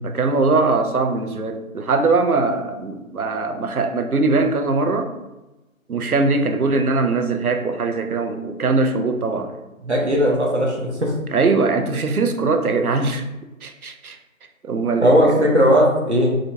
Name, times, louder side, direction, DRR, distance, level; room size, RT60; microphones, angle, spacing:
voice 1, 0.0-5.1 5.9-9.5 11.3-13.2 13.6-14.2 14.6-15.5, right 3 dB, 85° right, 6 dB, 0.6 m, -21 dB
voice 2, 9.8-11.1 15.0-16.4, equal, 50° right, -1 dB, 0.9 m, -17 dB
3.8 x 3.2 x 2.6 m, 1.0 s
figure-of-eight pair, 170°, 43 cm